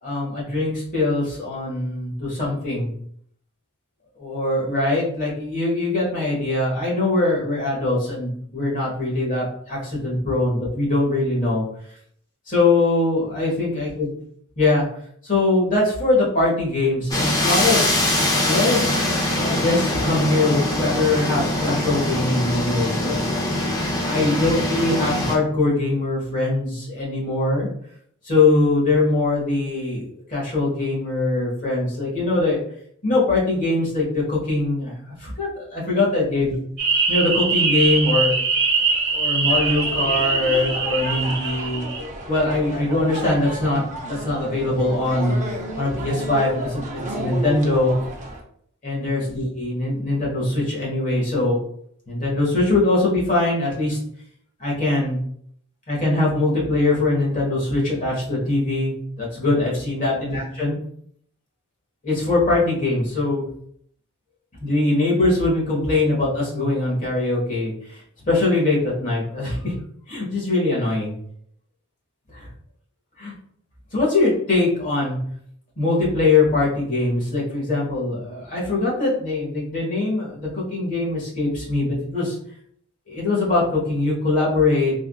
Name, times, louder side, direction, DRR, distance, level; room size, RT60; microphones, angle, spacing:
voice 1, 0.0-2.9 4.2-11.6 12.5-14.1 14.6-14.8 15.2-17.8 18.4-19.0 19.3-23.2 24.0-27.7 28.2-32.6 33.0-36.6 37.1-38.3 39.1-41.9 42.3-47.9 48.8-51.6 52.1-54.0 54.6-55.2 55.9-60.8 62.0-63.4 64.6-69.7 70.1-71.1 72.3-72.5 73.2-73.3 73.9-75.2 75.8-82.4 83.1-84.9, left 2 dB, 35° left, -5 dB, 1.3 m, -22 dB
sound 1, 17.1-25.3, left 1 dB, 15° left, 0.6 m, -23 dB
sound 2, 36.8-42.0, right 4 dB, 55° right, 1.0 m, -22 dB
sound 3, 39.5-48.4, right 1 dB, 35° right, 0.6 m, -32 dB
3.5 x 2.4 x 2.3 m, 0.66 s
head